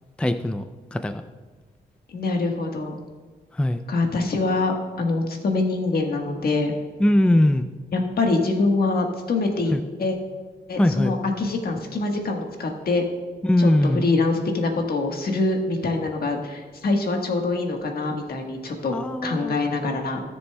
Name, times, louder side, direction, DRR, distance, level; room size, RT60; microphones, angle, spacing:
voice 1, 0.2-0.6 0.9-1.2 3.5-3.8 7.0-7.7 9.7-9.8 10.8-11.1 13.4-14.1 18.9-19.6, left 1 dB, 5° left, 9 dB, 0.4 m, -20 dB
voice 2, 2.1-3.0 3.9-6.7 7.9-9.7 10.0-10.2 10.7-13.0 13.6-18.9 19.2-20.2, left 3 dB, 65° left, 3 dB, 1.4 m, -24 dB
17.0 x 6.9 x 2.3 m, 1.4 s
cardioid pair, 80°, 17 cm